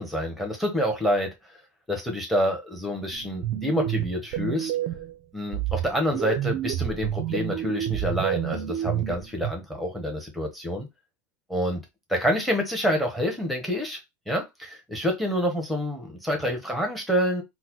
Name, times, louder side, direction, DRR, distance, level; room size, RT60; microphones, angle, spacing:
voice 1, 0.0-1.6 1.9-4.7 5.3-10.9 11.5-11.8 12.1-14.0 14.3-17.4, equal, ahead, 0.9 m, -27 dB
sound 1, 3.1-5.1 5.5-9.5, right 12 dB, 45° right, 0.4 m, -29 dB
3.9 x 2.1 x 3.0 m
supercardioid pair, 150°, 10 cm